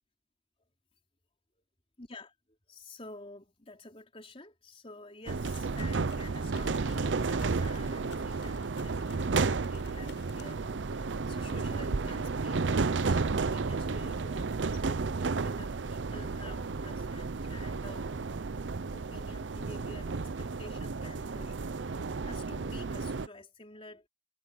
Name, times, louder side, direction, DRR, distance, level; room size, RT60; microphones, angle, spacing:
voice 1, 2.0-2.3 2.7-18.2 18.9-24.1, left 2 dB, 35° left, 4.1 m, -50 dB
sound 1, 5.3-23.3, right 4 dB, 90° right, 0.7 m, -32 dB
sound 2, 5.5-10.8, left 7 dB, 80° left, 7.5 m, -57 dB
head